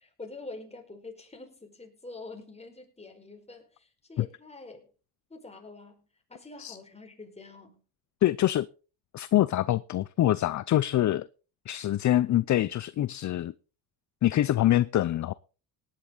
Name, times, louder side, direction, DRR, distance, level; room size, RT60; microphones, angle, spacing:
voice 1, 0.0-4.9 5.3-7.8, left 3 dB, 15° left, 5.0 m, -46 dB
voice 2, 8.2-8.7 9.1-11.3 11.7-13.5 14.2-15.3, left 13 dB, 45° left, 0.6 m, -25 dB
18.0 x 10.5 x 4.0 m
cardioid pair, 95°, 41 cm